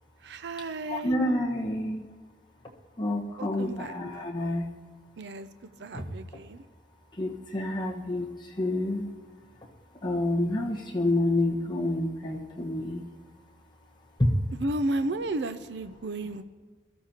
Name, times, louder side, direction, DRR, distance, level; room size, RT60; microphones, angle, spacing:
voice 1, 0.2-1.1 3.4-3.9 5.2-5.5 5.8-6.6 14.6-16.4, right 2 dB, 65° right, 11 dB, 0.5 m, -33 dB
voice 2, 0.8-2.1 2.6-4.7 5.9-6.0 7.1-9.1 9.6-13.1 14.0-14.3, left 1 dB, 25° left, -2 dB, 1.4 m, -29 dB
22.5 x 13.0 x 2.9 m, 1.4 s
head